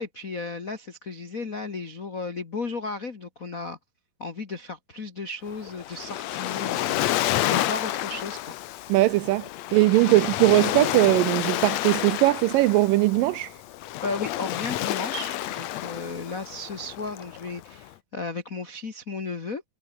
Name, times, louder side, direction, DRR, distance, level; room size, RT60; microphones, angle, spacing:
voice 1, 0.0-3.8 4.2-8.5 10.0-10.2 14.0-19.6, left 3 dB, 65° left, 0.8 m, -34 dB
Waves surf, 5.5-17.9, left 14 dB, 80° left, 1.5 m, -30 dB
voice 2, 8.9-13.5, right 18 dB, 80° right, 2.1 m, -20 dB
omnidirectional pair, 4.2 m